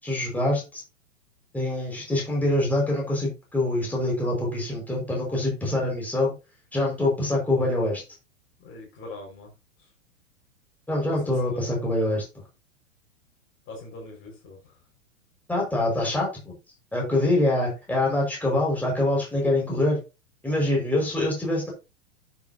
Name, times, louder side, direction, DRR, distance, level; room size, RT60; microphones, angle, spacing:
voice 1, 0.0-0.8 1.5-6.3 6.7-8.0 10.9-12.2 15.5-16.5 16.9-20.0 20.4-21.7, left 1 dB, 5° left, 5.6 m, -25 dB
voice 2, 8.6-9.5 11.1-11.6 13.7-14.6, left 2 dB, 30° left, 5.8 m, -42 dB
10.5 x 8.0 x 2.9 m
figure-of-eight pair, 105°, 38 cm